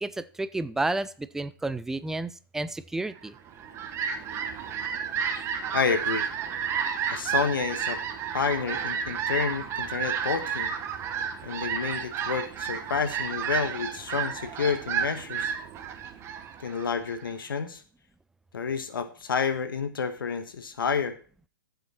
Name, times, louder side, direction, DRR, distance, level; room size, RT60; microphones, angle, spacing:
voice 1, 0.0-3.4, right 2 dB, 5° right, 14 dB, 0.4 m, -31 dB
Fowl, 3.4-17.3, right 7 dB, 25° right, 1.4 m, -31 dB
voice 2, 5.7-6.3 7.1-8.0 8.3-10.7 11.4-15.5 16.6-17.8 18.5-21.2, left 6 dB, 75° left, 10 dB, 1.3 m, -29 dB
13.5 x 7.7 x 4.3 m, 0.42 s
hypercardioid pair, 130°, 11 cm